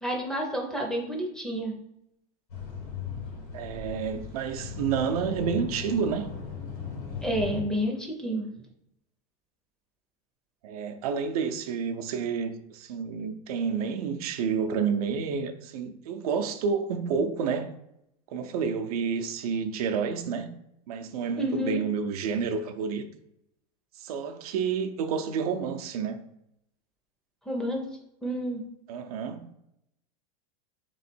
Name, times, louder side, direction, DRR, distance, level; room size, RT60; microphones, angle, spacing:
voice 1, 0.0-1.7 7.2-8.5 21.4-21.8 27.5-27.8 28.2-28.6, equal, 5° left, 0.4 m, -29 dB
sound 1, 2.5-7.6, left 6 dB, 85° left, 1.6 m, -37 dB
voice 2, 3.5-6.3 10.6-17.7 18.3-20.5 20.9-23.0 23.9-26.2 28.9-29.5, right 6 dB, 85° right, 0.5 m, -29 dB
3.5 x 3.1 x 4.3 m
supercardioid pair, 165°, 19 cm